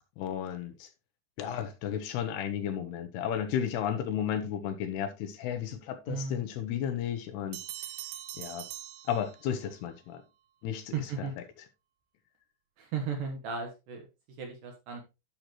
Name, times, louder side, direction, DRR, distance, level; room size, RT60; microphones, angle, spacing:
voice 1, 0.2-0.9 1.4-7.6 8.4-8.7 9.1-10.2 10.6-11.3, left 9 dB, 80° left, 2.6 m, -33 dB
voice 2, 6.1-6.5 10.9-11.3 12.8-14.1 14.4-15.0, right 5 dB, 65° right, 2.3 m, -35 dB
Bell, 7.5-9.8, right 14 dB, 85° right, 2.1 m, -42 dB
12.0 x 5.8 x 3.1 m
omnidirectional pair, 5.2 m